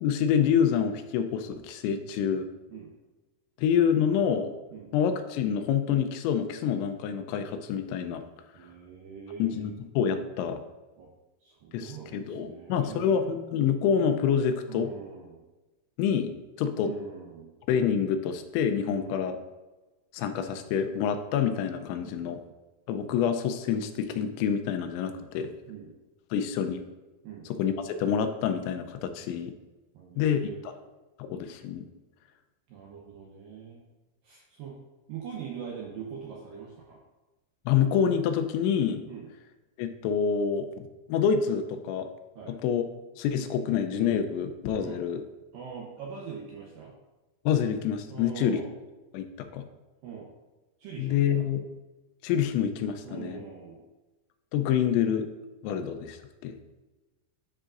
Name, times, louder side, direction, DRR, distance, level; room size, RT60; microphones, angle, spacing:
voice 1, 0.0-2.5 3.6-4.5 4.9-8.2 9.4-10.6 11.7-14.9 16.0-16.9 17.7-19.4 20.1-22.4 22.9-25.5 26.3-26.8 27.6-29.5 30.2-30.5 31.2-31.9 37.7-39.0 39.8-42.1 42.5-42.8 43.2-45.2 47.5-48.6 49.1-49.6 51.0-51.6 52.2-53.4 54.5-55.3 55.6-56.2 56.4-56.5, left 8 dB, 85° left, 7 dB, 3.0 m, -27 dB
voice 2, 8.5-9.8 11.0-11.1 11.4-13.4 14.7-15.4 16.8-17.5 18.8-19.4 22.0-22.3 25.1-25.3 25.7-25.9 27.2-27.5 29.9-30.6 32.7-33.8 34.2-34.8 35.1-37.0 39.1-39.3 42.4-42.6 44.8-45.0 45.5-46.9 48.1-48.7 50.0-50.3 50.8-51.5 53.0-53.8, right 7 dB, 80° right, -3 dB, 2.1 m, -42 dB
12.5 x 5.0 x 2.5 m, 1.1 s
omnidirectional pair, 5.1 m